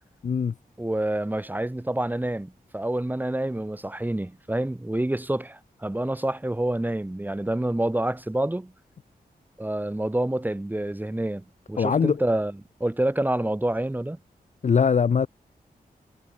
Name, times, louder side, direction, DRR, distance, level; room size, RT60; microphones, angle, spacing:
voice 1, 0.2-0.5 11.8-12.2 14.6-15.3, left 6 dB, 50° left, 0.5 m, -21 dB
voice 2, 0.8-8.7 9.6-14.2, right 1 dB, 10° right, 1.9 m, -27 dB
wide cardioid pair, 135°, 16 cm